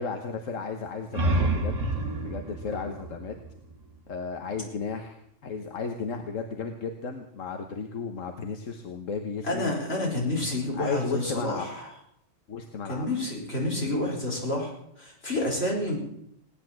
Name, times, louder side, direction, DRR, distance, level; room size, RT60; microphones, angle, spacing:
voice 1, 0.0-1.7 2.2-3.3 4.1-9.6 10.7-11.7 12.5-13.1, left 5 dB, 80° left, 5 dB, 1.5 m, -34 dB
sound 1, 0.9-4.3, right 2 dB, 75° right, 2.1 m, -29 dB
voice 2, 9.4-11.9 12.9-14.7 15.0-16.0, left 1 dB, 55° left, -2 dB, 5.3 m, -29 dB
18.0 x 10.0 x 7.6 m, 0.75 s
omnidirectional pair, 1.3 m